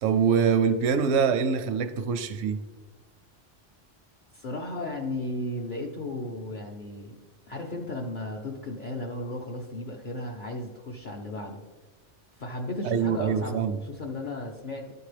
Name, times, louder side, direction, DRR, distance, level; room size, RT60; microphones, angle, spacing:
voice 1, 0.0-2.6 12.8-13.8, right 6 dB, 80° right, 8 dB, 0.9 m, -24 dB
voice 2, 4.3-7.2 7.5-11.6 12.4-14.9, left 1 dB, 50° left, -1 dB, 0.7 m, -35 dB
12.5 x 4.6 x 3.3 m, 1.3 s
omnidirectional pair, 1.2 m